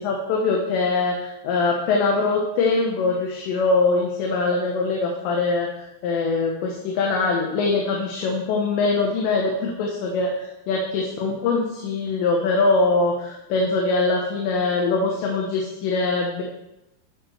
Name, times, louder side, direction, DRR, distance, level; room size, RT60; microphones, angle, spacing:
voice 1, 0.0-5.7 6.0-16.4, left 3 dB, 80° left, 0 dB, 3.3 m, -22 dB
12.5 x 5.9 x 4.5 m, 0.93 s
omnidirectional pair, 5.1 m